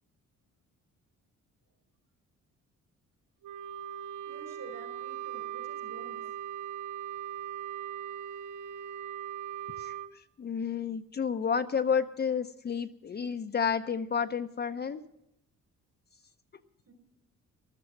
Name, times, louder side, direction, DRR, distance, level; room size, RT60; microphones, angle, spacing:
Wind instrument woodwind instrument, 3.4-10.1, right 10 dB, 80° right, 0.7 m, -39 dB
voice 1, 4.3-6.2 16.9-17.0, right 4 dB, 60° right, 5 dB, 5.5 m, -49 dB
voice 2, 10.4-15.0, left 6 dB, 35° left, 8 dB, 0.6 m, -30 dB
14.5 x 13.0 x 5.9 m, 0.80 s
cardioid pair, 90°, 30 cm